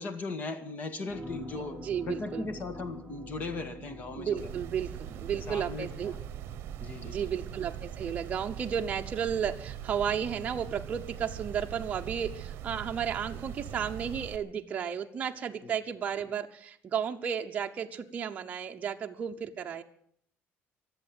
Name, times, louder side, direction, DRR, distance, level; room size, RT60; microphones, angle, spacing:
voice 1, 0.0-1.8 2.0-4.5 5.3-6.2 6.8-7.3 15.6-15.7, left 3 dB, 40° left, 10 dB, 1.8 m, -38 dB
sound 1, 1.1-7.1 7.5-7.6, right 1 dB, ahead, 3.6 m, -46 dB
voice 2, 1.8-2.5 4.1-6.1 7.0-19.8, right 8 dB, 30° right, 3 dB, 0.9 m, -33 dB
sound 2, 4.4-14.4, right 10 dB, 60° right, 1.0 m, -41 dB
23.0 x 8.0 x 7.7 m, 0.66 s
cardioid pair, 155°, 5 cm